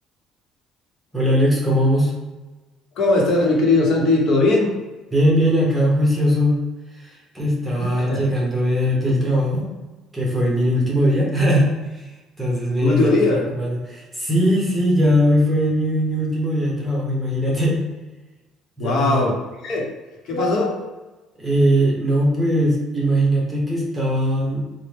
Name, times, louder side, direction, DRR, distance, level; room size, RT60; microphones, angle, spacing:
voice 1, 1.1-2.1 5.1-6.6 7.0-9.7 10.1-12.0 12.4-17.9 18.8-19.3 21.4-24.6, equal, 10° right, -3 dB, 1.0 m, -20 dB
voice 2, 3.0-4.7 8.0-8.3 12.8-13.4 18.8-19.4 19.6-19.9 20.2-20.8, left 2 dB, 60° left, -1 dB, 0.9 m, -19 dB
4.2 x 2.1 x 3.4 m, 1.2 s
cardioid pair, 125°, 0 cm